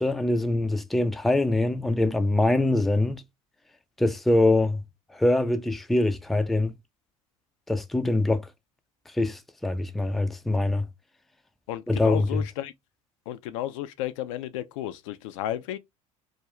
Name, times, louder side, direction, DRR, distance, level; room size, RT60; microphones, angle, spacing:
voice 1, 0.0-3.2 4.0-4.8 5.1-6.7 7.7-8.4 9.1-10.8 11.9-12.4, left 2 dB, ahead, 0.3 m, -23 dB
voice 2, 11.7-12.7 13.3-15.8, left 12 dB, 70° left, 0.4 m, -33 dB
2.4 x 2.3 x 2.9 m
hypercardioid pair, 70°, 17 cm